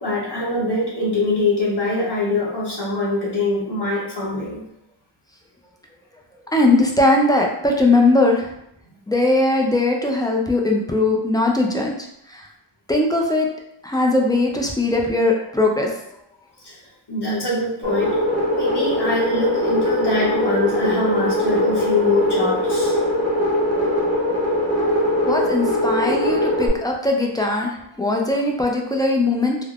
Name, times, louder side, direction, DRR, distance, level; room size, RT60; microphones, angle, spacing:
voice 1, 0.0-4.6 16.6-16.8 17.1-18.2 18.5-22.9, left 2 dB, 65° left, -6 dB, 0.9 m, -23 dB
voice 2, 6.5-8.5 9.1-11.9 12.3-12.5 12.9-13.5 13.8-15.9 25.3-29.6, left 2 dB, 10° left, 0 dB, 0.4 m, -19 dB
sound 1, 17.8-26.7, left 1 dB, 35° right, 0.7 m, -21 dB
3.3 x 2.0 x 2.4 m, 0.77 s
wide cardioid pair, 65°, 44 cm